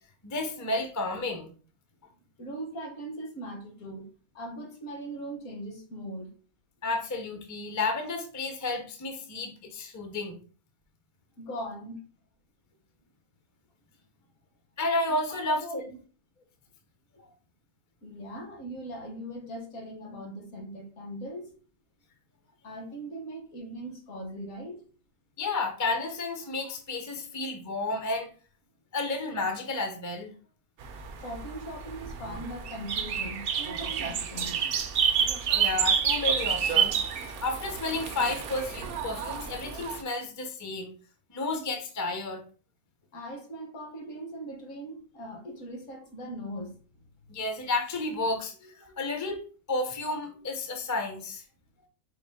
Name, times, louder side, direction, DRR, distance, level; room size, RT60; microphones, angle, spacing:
voice 1, 0.2-1.5 6.8-10.4 14.8-15.9 25.4-28.3 28.9-30.3 35.5-37.0 37.2-40.9 41.3-42.4 47.3-49.4 49.7-51.4, left 2 dB, 30° left, 0.3 m, -31 dB
voice 2, 2.4-4.1 4.3-6.3 11.4-12.0 15.1-15.2 15.6-15.8 18.0-21.5 22.6-24.9 31.2-34.7 43.1-46.8, right 1 dB, 65° left, 1.4 m, -40 dB
sound 1, 30.8-40.0, right 7 dB, 70° right, 0.5 m, -29 dB
4.9 x 2.6 x 3.5 m
omnidirectional pair, 1.5 m